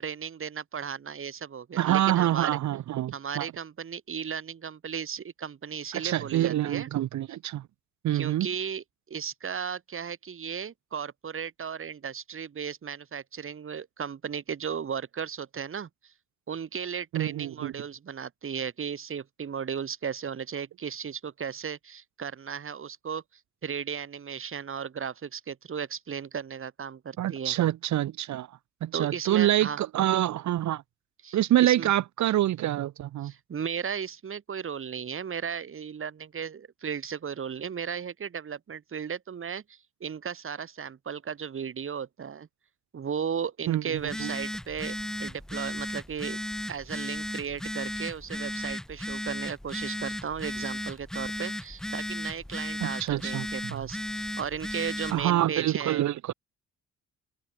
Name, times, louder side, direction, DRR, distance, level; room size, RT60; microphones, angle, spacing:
voice 1, 0.0-2.5 3.1-6.9 8.1-16.1 16.5-23.2 23.6-27.6 28.9-29.8 31.2-31.9 33.2-42.5 42.9-44.9 45.2-46.4 46.7-56.1, right 7 dB, 45° right, 2.7 m, -35 dB
voice 2, 1.8-3.5 5.9-7.6 8.0-8.5 17.1-17.7 27.2-28.5 28.8-30.8 31.3-33.3 43.7-43.8 44.2-44.3 52.8-53.5 55.1-56.3, right 13 dB, 70° right, 1.0 m, -26 dB
Telephone, 44.0-55.2, left 1 dB, ahead, 0.3 m, -35 dB
cardioid pair, 90°, 30 cm